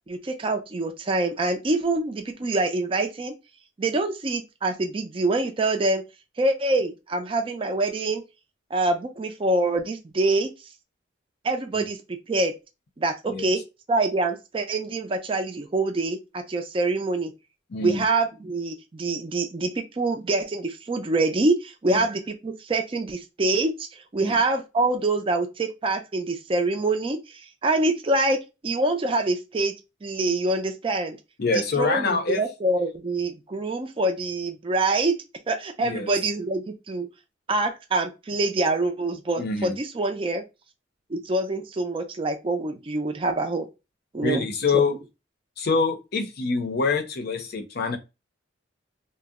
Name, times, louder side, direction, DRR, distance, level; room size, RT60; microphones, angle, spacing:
voice 1, 0.1-3.3 3.8-6.0 6.4-8.2 8.7-10.5 11.4-12.0 12.3-12.5 13.0-13.6 13.9-17.3 17.8-29.7 30.0-31.2 31.5-35.2 35.5-37.1 37.5-40.4 41.1-43.7 44.1-44.4 44.7-44.8, right 2 dB, 30° right, 0.4 m, -25 dB
voice 2, 17.7-18.0 21.9-22.1 24.2-24.4 31.4-32.4 35.8-36.1 39.4-39.8 44.2-44.9 45.6-48.0, left 4 dB, 55° left, 0.6 m, -25 dB
2.6 x 2.0 x 3.5 m
head